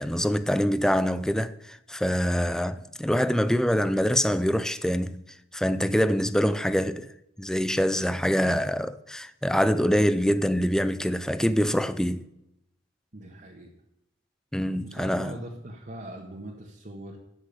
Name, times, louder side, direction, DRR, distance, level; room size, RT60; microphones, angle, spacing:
voice 1, 0.0-5.3 5.5-7.1 7.4-12.3 14.5-15.4, equal, 5° left, 0.5 m, -25 dB
voice 2, 13.1-13.7 14.8-17.2, right 1 dB, 45° right, 1.6 m, -41 dB
13.0 x 6.4 x 8.6 m
head